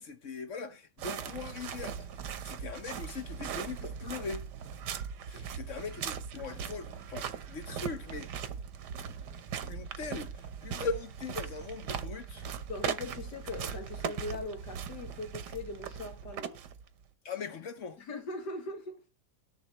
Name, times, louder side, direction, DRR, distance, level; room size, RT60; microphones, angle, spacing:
voice 1, 0.0-4.5 5.3-8.3 9.6-12.5 17.2-18.0, left 4 dB, 50° left, 1.3 m, -40 dB
sound 1, 1.0-17.0, right 7 dB, 85° right, 1.5 m, -39 dB
voice 2, 12.7-16.6 18.0-19.0, left 2 dB, 80° left, 2.4 m, -40 dB
18.5 x 7.0 x 3.0 m
omnidirectional pair, 1.8 m